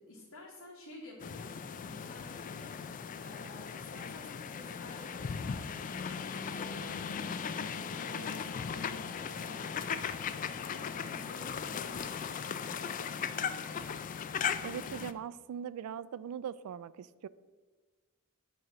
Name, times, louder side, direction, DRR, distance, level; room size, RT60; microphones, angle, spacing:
voice 1, 0.0-14.3, left 1 dB, 65° left, -5 dB, 1.4 m, -52 dB
sound 1, 1.2-15.1, left 7 dB, 35° left, 0.3 m, -38 dB
sound 2, 4.8-13.8, left 1 dB, 10° left, 1.5 m, -53 dB
voice 2, 14.6-17.3, right 8 dB, 70° right, 17 dB, 0.3 m, -40 dB
9.0 x 3.1 x 5.9 m, 1.3 s
head